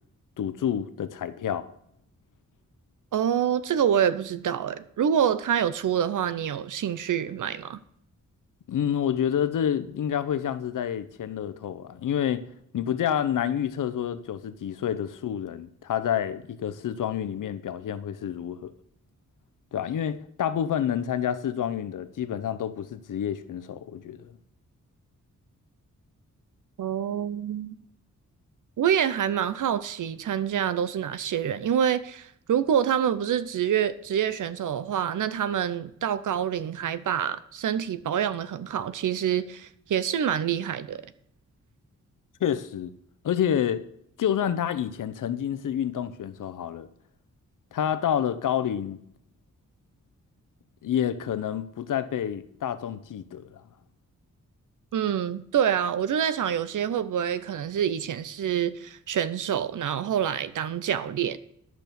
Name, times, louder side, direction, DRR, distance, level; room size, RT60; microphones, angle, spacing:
voice 1, 0.4-1.7 8.7-12.4 12.7-18.7 19.7-24.3 42.4-42.9 43.2-43.8 44.2-46.9 47.7-49.0 50.8-53.6, left 9 dB, 90° left, 0.8 m, -28 dB
voice 2, 3.1-7.8 26.8-27.8 28.8-41.0 54.9-61.4, right 9 dB, 80° right, 0.8 m, -26 dB
11.5 x 6.1 x 6.9 m
wide cardioid pair, 120°, 31 cm